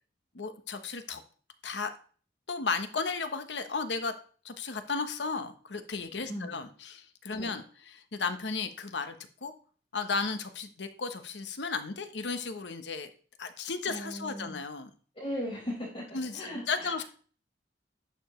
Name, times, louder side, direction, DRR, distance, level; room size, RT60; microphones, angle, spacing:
voice 1, 0.3-1.2 1.6-1.9 2.5-4.1 4.4-9.5 9.9-13.1 13.4-14.9 16.1-17.0, left 4 dB, 75° left, 9 dB, 0.9 m, -34 dB
voice 2, 6.3-6.6 7.3-7.5 13.9-14.6 15.1-16.0 16.3-16.9, equal, 35° left, -8 dB, 4.5 m, -37 dB
11.5 x 6.8 x 3.1 m, 0.43 s
head